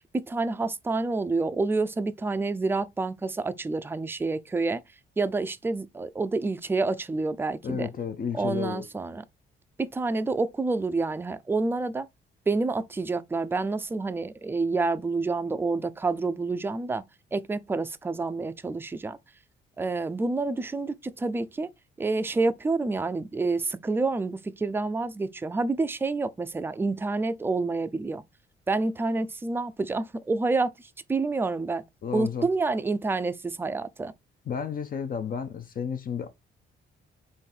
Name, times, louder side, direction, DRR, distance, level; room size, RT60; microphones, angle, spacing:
voice 1, 0.3-4.8 5.2-7.9 8.3-9.2 9.8-12.1 12.5-17.0 17.3-19.2 19.8-21.7 22.0-28.2 28.7-30.7 31.1-31.8 32.1-34.1, right 3 dB, 10° right, 0.4 m, -28 dB
voice 2, 7.6-8.9 32.0-32.5 34.5-36.3, left 7 dB, 45° left, 0.5 m, -32 dB
3.8 x 2.6 x 4.2 m
cardioid pair, 90°, 20 cm